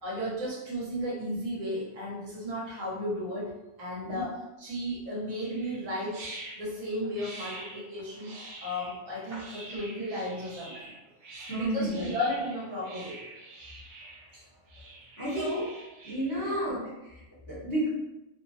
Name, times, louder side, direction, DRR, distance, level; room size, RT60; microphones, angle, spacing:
voice 1, 0.0-3.5 3.8-6.2 6.5-8.3 8.6-10.9 11.5-13.2 15.3-15.6 16.4-16.6, equal, 80° right, -6 dB, 1.5 m, -34 dB
sound 1, 5.3-16.3, right 2 dB, 65° right, 1.0 m, -46 dB
voice 2, 11.5-12.1 14.3-14.4 15.2-15.6 16.0-17.9, right 1 dB, 20° left, -9 dB, 0.7 m, -32 dB
3.1 x 2.1 x 2.6 m, 0.97 s
omnidirectional pair, 1.4 m